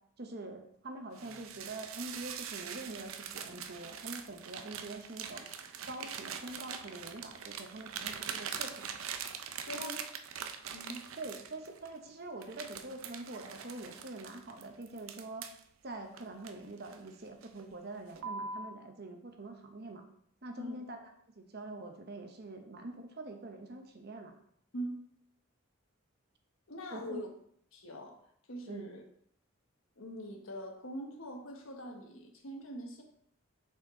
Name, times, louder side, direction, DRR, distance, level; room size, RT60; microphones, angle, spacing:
voice 1, 0.2-5.5 5.9-8.9 9.7-10.0 11.2-15.5 15.8-20.0 20.4-21.0 21.4-24.3 26.9-27.2 28.7-28.9, right 2 dB, 50° right, 4 dB, 0.9 m, -45 dB
sound 1, 1.1-11.9 12.4-15.6 16.2-17.1 17.4-17.7 18.2-18.7, right 7 dB, 80° right, 0.5 m, -43 dB
voice 2, 9.7-10.0 10.7-11.1 20.6-20.8 24.7-25.0 26.7-27.3 27.7-28.1 28.5-29.0 30.0-33.0, equal, 80° left, 3 dB, 1.1 m, -43 dB
6.1 x 4.3 x 3.8 m, 0.68 s
head